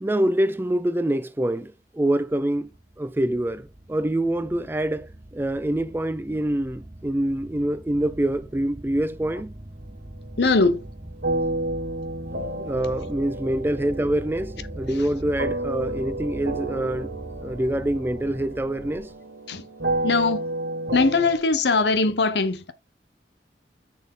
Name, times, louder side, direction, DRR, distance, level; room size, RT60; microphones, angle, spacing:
voice 1, 0.0-2.7 3.0-9.5 12.6-17.1 17.4-19.1, right 1 dB, 10° right, 0.4 m, -25 dB
sound 1, 1.8-19.1, right 1 dB, 30° right, 1.0 m, -42 dB
voice 2, 10.4-10.8 19.5-19.6 20.0-20.4 20.9-22.7, left 3 dB, 75° left, 0.9 m, -21 dB
sound 2, 11.2-21.4, right 2 dB, 75° right, 1.8 m, -31 dB
7.0 x 6.2 x 3.8 m
head